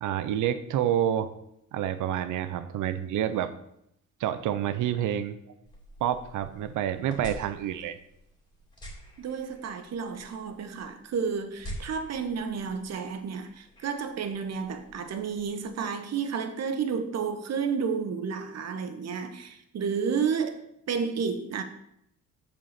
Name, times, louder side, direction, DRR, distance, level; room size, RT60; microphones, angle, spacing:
voice 1, 0.0-1.3 1.7-3.5 4.2-5.4 6.0-8.0, right 10 dB, 80° right, 0.7 m, -28 dB
sound 1, 5.7-15.8, equal, 15° left, 2.5 m, -47 dB
voice 2, 9.2-20.6 20.9-21.6, right 6 dB, 60° right, 1.0 m, -31 dB
7.4 x 4.2 x 6.6 m
cardioid pair, 90°, 30 cm